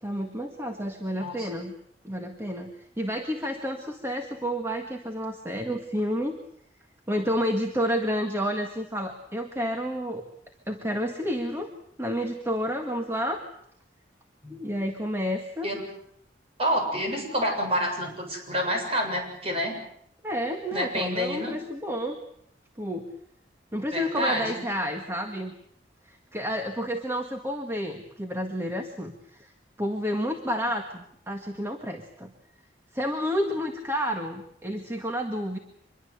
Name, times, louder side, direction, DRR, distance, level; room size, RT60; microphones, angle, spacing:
voice 1, 0.0-1.7 2.0-6.4 7.1-10.2 10.7-11.7 12.0-13.4 14.5-15.7 20.2-22.2 22.8-23.1 23.7-25.5 26.0-29.5 29.8-32.3 32.9-35.6, equal, 15° right, 4 dB, 1.7 m, -30 dB
voice 2, 16.6-19.8 20.7-21.6 23.9-24.6, equal, 35° right, 3 dB, 7.4 m, -28 dB
25.5 x 22.0 x 8.1 m, 0.70 s
head